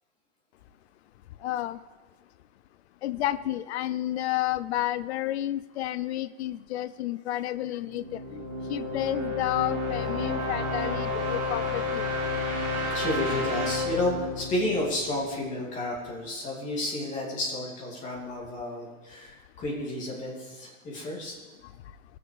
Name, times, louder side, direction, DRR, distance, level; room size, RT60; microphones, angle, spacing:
voice 1, 1.4-1.8 3.0-12.1, left 14 dB, 55° left, 15 dB, 0.5 m, -31 dB
sound 1, 7.9-15.7, left 2 dB, 20° right, 2.4 m, -31 dB
voice 2, 12.9-21.3, left 1 dB, 20° left, -3 dB, 2.3 m, -31 dB
18.5 x 6.7 x 4.9 m, 1.3 s
supercardioid pair, 165°, 40 cm